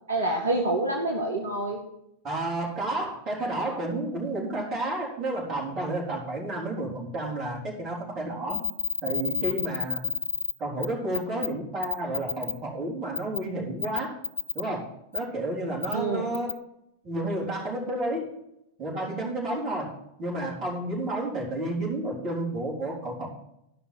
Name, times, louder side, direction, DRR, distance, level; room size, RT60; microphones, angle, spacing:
voice 1, 0.1-1.8 15.9-16.3, right 2 dB, 70° right, 2 dB, 1.2 m, -27 dB
voice 2, 2.2-8.6 9.0-10.0 10.6-14.1 14.5-16.5 17.0-18.3 18.8-19.9 20.2-23.3, right 1 dB, 30° right, -3 dB, 3.7 m, -31 dB
sound 1, 8.5-10.5 10.8-10.9 11.1-11.5 11.8-12.5 13.2-13.4 13.8-14.6 15.1-15.2 15.8-15.9 16.3-16.5, left 6 dB, 80° left, 0.4 m, -29 dB
12.5 x 5.6 x 5.9 m, 0.82 s
figure-of-eight pair, 90°, 0 cm